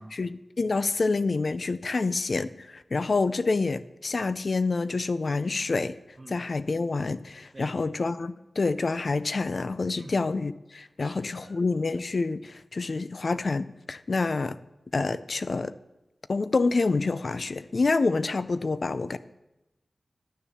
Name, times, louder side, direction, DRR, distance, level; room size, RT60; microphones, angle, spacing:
voice 1, 0.0-6.0 6.3-14.6 14.9-15.8 16.3-19.2, left 3 dB, 65° left, 15 dB, 0.5 m, -27 dB
voice 2, 11.0-11.6, right 1 dB, 35° right, 4 dB, 1.9 m, -47 dB
12.0 x 7.1 x 7.0 m, 0.94 s
cardioid pair, 45°, 0 cm